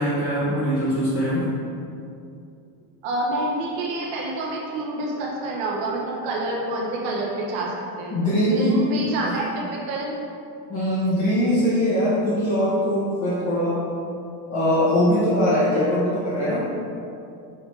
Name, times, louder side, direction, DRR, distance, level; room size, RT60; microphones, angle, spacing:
voice 1, 0.0-1.5 8.1-8.9 9.2-9.3 10.7-13.8 14.5-16.7, equal, 30° left, -10 dB, 1.5 m, -22 dB
voice 2, 3.0-7.7 8.0-10.2, right 2 dB, 65° right, -3 dB, 1.4 m, -28 dB
5.9 x 4.2 x 4.8 m, 2.6 s
cardioid pair, 150°, 48 cm